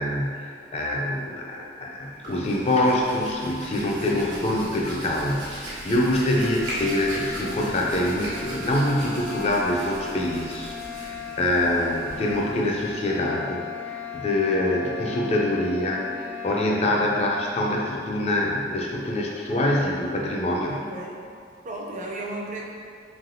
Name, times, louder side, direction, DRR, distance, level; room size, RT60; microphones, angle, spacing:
voice 1, 0.0-20.8, left 1 dB, 35° left, -1 dB, 0.3 m, -25 dB
Hands, 2.0-13.5, right 1 dB, 80° right, 1.1 m, -38 dB
voice 2, 4.1-4.5 17.0-17.4 20.7-21.2 21.6-22.7, right 2 dB, 45° right, -2 dB, 0.4 m, -36 dB
sound 1, 6.0-17.9, left 6 dB, 85° left, 0.6 m, -38 dB
3.2 x 2.6 x 2.5 m, 2.3 s
head